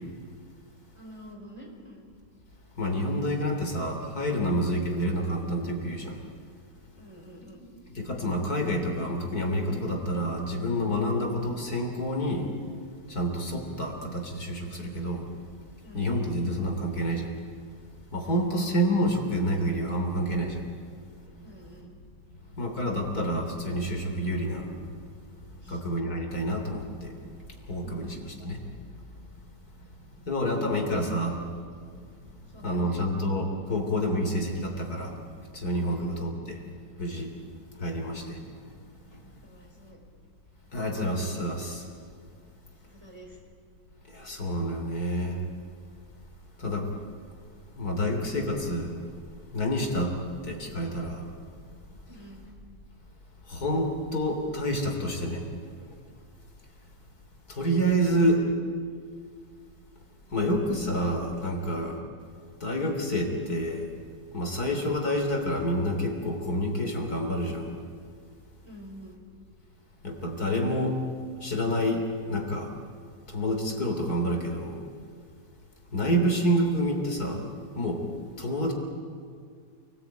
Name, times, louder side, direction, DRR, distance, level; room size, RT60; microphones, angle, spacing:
voice 1, 0.9-2.2 7.0-7.7 15.8-16.1 18.2-18.3 21.4-21.9 25.6-25.8 27.8-28.2 32.4-33.1 35.9-36.2 39.4-40.0 42.8-43.4 52.1-52.4 58.1-58.5 68.6-69.2, equal, 15° right, -1 dB, 4.3 m, -48 dB
voice 2, 2.8-6.2 8.0-12.5 13.1-15.3 15.9-17.3 18.1-20.6 22.6-24.7 25.7-27.1 27.7-28.6 30.3-31.4 32.6-35.2 35.5-36.6 37.0-37.3 37.8-38.4 40.7-41.8 44.1-45.4 46.6-46.9 47.8-48.9 49.5-50.1 50.4-51.2 53.5-55.4 57.5-58.4 60.3-62.0 62.6-63.9 64.3-67.7 70.0-71.0 71.4-72.7 73.3-74.8 75.9-77.4 77.8-78.0 78.4-78.7, equal, 55° left, 3 dB, 3.7 m, -28 dB
28.5 x 19.5 x 9.1 m, 2.1 s
omnidirectional pair, 1.9 m